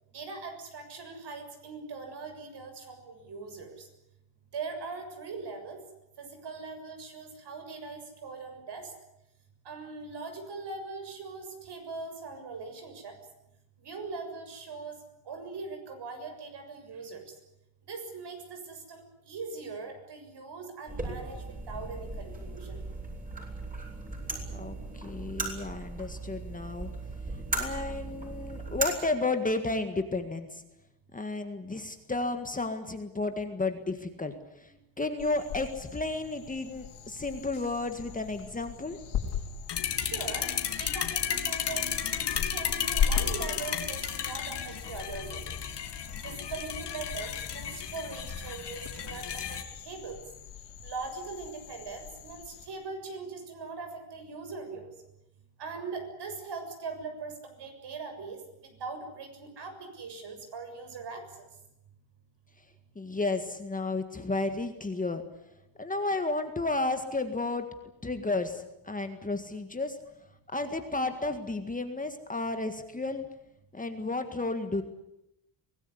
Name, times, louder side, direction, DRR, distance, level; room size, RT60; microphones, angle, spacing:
voice 1, 0.1-3.9 4.5-5.8 6.2-8.9 9.7-13.2 13.8-15.0 15.3-17.3 17.9-22.8 40.0-40.5 40.8-45.6 46.2-50.2 50.8-54.9 55.6-61.5, right 4 dB, 55° right, 6 dB, 7.0 m, -41 dB
sound 1, 20.9-28.9, right 2 dB, 15° right, 7.8 m, -37 dB
voice 2, 24.5-26.9 27.5-30.6 31.1-39.0 62.9-65.2 65.8-67.7 68.0-70.0 70.5-73.2 73.7-74.8, left 3 dB, 15° left, 7 dB, 1.8 m, -32 dB
sound 2, 35.2-52.7, left 7 dB, 75° left, 4.9 m, -38 dB
sound 3, 39.7-49.6, left 9 dB, 55° left, 2.8 m, -33 dB
24.5 x 18.5 x 9.9 m, 0.86 s
cardioid pair, 140°, 49 cm